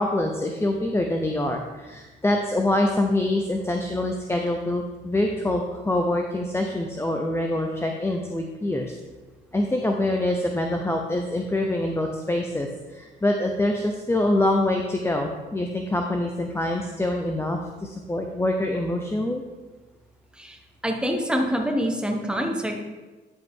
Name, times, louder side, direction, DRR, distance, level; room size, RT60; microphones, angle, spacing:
voice 1, 0.0-8.9 9.5-19.4, left 1 dB, 10° left, 2 dB, 0.7 m, -25 dB
voice 2, 20.8-22.8, equal, 5° right, 2 dB, 1.3 m, -25 dB
10.5 x 5.0 x 3.7 m, 1.2 s
cardioid pair, 90°, 20 cm